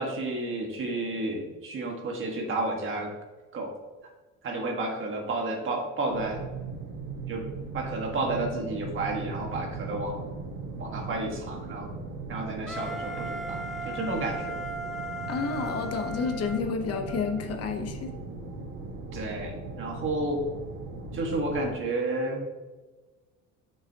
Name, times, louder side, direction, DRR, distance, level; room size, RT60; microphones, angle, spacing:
voice 1, 0.0-3.1 3.5-3.7 4.4-6.4 7.3-7.4 7.7-10.2 10.8-11.9 12.3-14.5 19.1-20.4 21.1-22.4, right 2 dB, 40° right, 1 dB, 1.6 m, -31 dB
sound 1, 6.1-21.7, right 3 dB, 65° right, 2.1 m, -38 dB
Wind instrument woodwind instrument, 12.7-17.4, right 1 dB, ahead, 0.4 m, -37 dB
voice 2, 15.3-18.1, left 5 dB, 50° left, 5 dB, 0.9 m, -30 dB
8.2 x 6.1 x 2.8 m, 1.2 s
cardioid pair, 145°, 32 cm